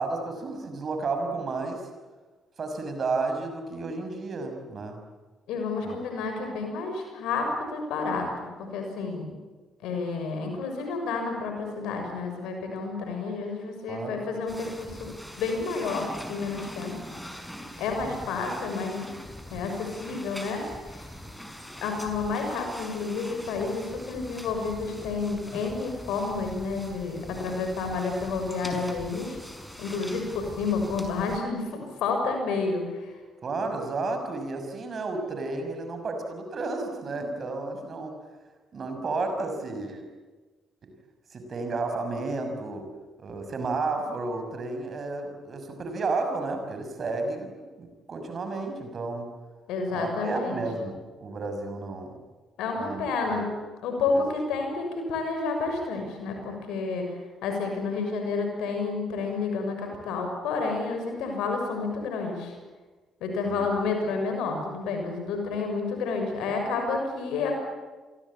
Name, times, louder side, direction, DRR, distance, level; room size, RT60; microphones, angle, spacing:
voice 1, 0.0-1.9 2.6-5.0 5.8-6.0 13.9-14.2 18.0-18.1 33.4-38.2 38.7-40.0 40.8-40.9 41.3-42.9 43.2-49.3 49.9-52.2 52.8-53.5 54.1-54.2 63.5-63.7, right 3 dB, 45° right, 6 dB, 6.2 m, -32 dB
voice 2, 5.5-8.3 8.6-9.4 9.8-17.0 17.8-19.1 19.5-20.6 21.8-29.4 29.8-31.7 32.0-32.8 49.7-50.6 52.6-53.5 53.8-57.0 57.4-62.5 63.2-67.6, left 4 dB, 65° left, 4 dB, 6.6 m, -30 dB
sound 1, 14.5-31.4, equal, 5° left, 5.5 m, -42 dB
29.0 x 23.5 x 8.8 m, 1.3 s
figure-of-eight pair, 40°, 0 cm